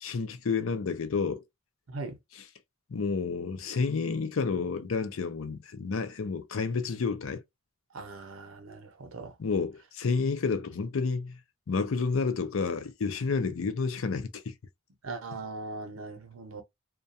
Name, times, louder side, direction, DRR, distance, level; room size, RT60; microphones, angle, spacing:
voice 1, 0.0-1.4 2.9-7.4 9.4-11.4 11.7-14.5, left 4 dB, 80° left, 0.5 m, -30 dB
voice 2, 1.9-2.2 7.9-9.3 13.4-13.5 15.0-16.6, right 3 dB, 85° right, 0.7 m, -40 dB
2.3 x 2.2 x 2.6 m
head